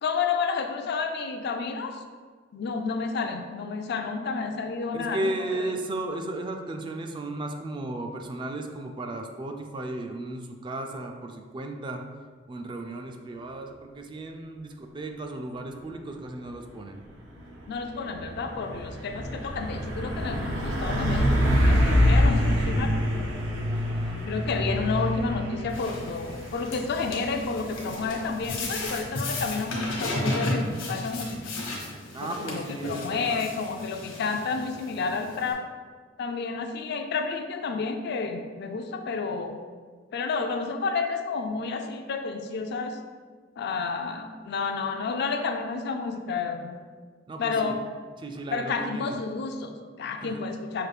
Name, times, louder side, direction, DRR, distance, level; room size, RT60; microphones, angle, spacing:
voice 1, 0.0-2.0 2.5-5.7 17.7-23.0 24.3-31.5 32.2-35.6 36.2-39.6 40.1-43.0 43.6-46.8 47.4-47.8 48.5-50.9, left 4 dB, 60° left, 6 dB, 0.4 m, -30 dB
voice 2, 4.9-12.0 12.5-17.0 23.7-24.2 32.1-33.5 47.3-47.8 48.2-49.1 50.2-50.4, right 2 dB, 25° right, 4 dB, 0.3 m, -35 dB
Truck, 17.1-31.4, equal, 90° right, 0.8 m, -27 dB
sound 1, 25.7-35.5, left 1 dB, 80° left, 1.1 m, -35 dB
5.9 x 2.5 x 3.3 m, 1.5 s
head